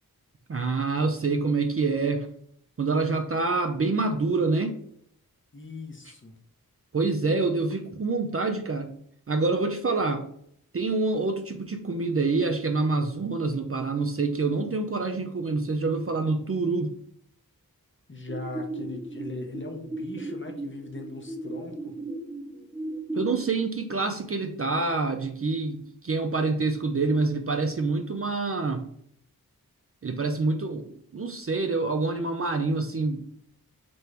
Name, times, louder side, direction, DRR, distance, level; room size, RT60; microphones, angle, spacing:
voice 1, 0.5-2.3 2.8-4.8 6.9-8.9 9.3-10.3 10.7-17.0 23.1-28.8 30.0-33.3, right 3 dB, 40° right, 5 dB, 0.4 m, -26 dB
voice 2, 5.5-6.3 18.1-21.9, left 2 dB, 30° left, 3 dB, 0.8 m, -39 dB
sound 1, 18.3-23.3, right 2 dB, 10° right, 0.8 m, -36 dB
4.3 x 2.6 x 3.3 m, 0.68 s
wide cardioid pair, 75°, 37 cm